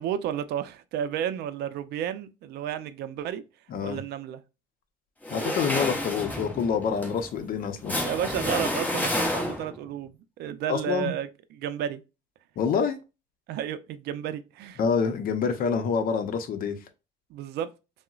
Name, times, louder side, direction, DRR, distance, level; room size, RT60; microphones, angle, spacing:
voice 1, 0.0-3.4 3.8-4.4 8.0-12.0 13.5-14.8 17.3-17.7, right 10 dB, 75° right, 0.4 m, -32 dB
sound 1, 5.2-9.9, left 1 dB, 10° left, 0.8 m, -30 dB
voice 2, 5.3-8.0 10.7-11.1 12.6-13.0 14.8-16.8, left 6 dB, 60° left, 0.6 m, -27 dB
3.7 x 2.1 x 2.3 m
cardioid pair, 110°, 17 cm